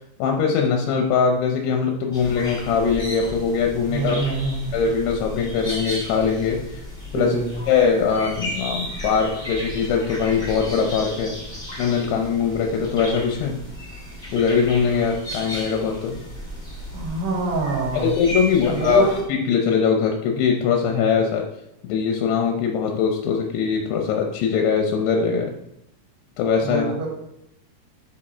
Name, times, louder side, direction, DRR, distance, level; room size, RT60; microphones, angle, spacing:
voice 1, 0.2-4.2 4.7-6.8 7.1-7.4 7.7-11.4 11.8-13.6 14.3-16.2 17.9-21.4 21.8-25.5 26.4-26.9, left 6 dB, 80° left, 2 dB, 2.4 m, -21 dB
sound 1, 2.1-19.2, equal, 25° left, 0.6 m, -34 dB
voice 2, 3.9-4.8 7.1-7.6 16.9-18.1 18.6-19.2 26.6-27.1, right 4 dB, 70° right, -4 dB, 3.3 m, -25 dB
10.0 x 4.3 x 4.3 m, 0.82 s
omnidirectional pair, 5.6 m